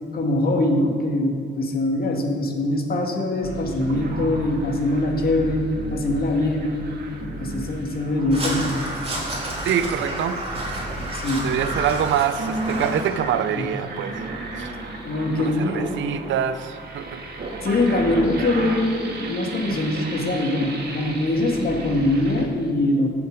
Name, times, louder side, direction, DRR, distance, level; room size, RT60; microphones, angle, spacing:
voice 1, 0.1-6.7 7.4-8.8 11.0-11.5 13.5-13.7 15.0-15.9 17.6-23.1, left 1 dB, 50° left, 2 dB, 2.0 m, -23 dB
sound 1, 3.4-22.5, right 2 dB, 55° right, 2.0 m, -34 dB
Crow, 8.3-13.3, right 1 dB, 30° right, 3.5 m, -30 dB
voice 2, 9.6-10.5 11.4-14.2 14.6-14.7 15.4-17.2, right 9 dB, 70° right, 11 dB, 0.7 m, -25 dB
15.0 x 7.1 x 5.2 m, 2.2 s
cardioid pair, 90°, 20 cm